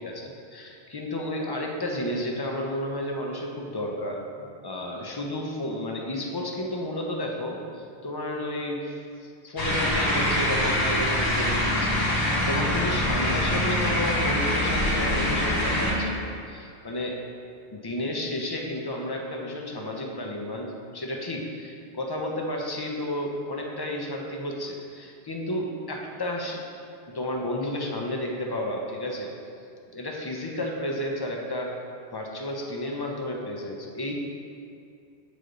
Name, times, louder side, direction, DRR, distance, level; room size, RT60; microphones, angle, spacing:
voice 1, 0.0-17.2 17.7-26.6 27.1-29.3 29.9-31.7 32.1-34.1, left 1 dB, 35° left, 0 dB, 0.4 m, -32 dB
sound 1, 9.6-15.9, left 1 dB, 75° left, 1.7 m, -24 dB
7.8 x 3.3 x 3.8 m, 2.4 s
omnidirectional pair, 1.1 m